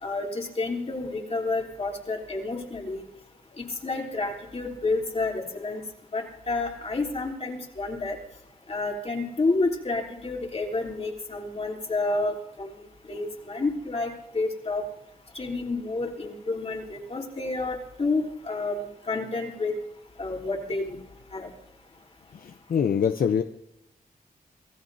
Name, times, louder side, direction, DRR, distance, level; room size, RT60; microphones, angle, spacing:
voice 1, 0.0-3.0 3.6-5.8 6.1-8.2 8.7-12.7 13.1-14.8 15.3-19.7 20.2-21.0 21.3-21.5, left 3 dB, 40° left, 0 dB, 3.4 m, -29 dB
voice 2, 22.3-23.4, left 7 dB, 75° left, 7 dB, 0.7 m, -24 dB
26.5 x 17.0 x 2.8 m, 0.84 s
wide cardioid pair, 100°, 15 cm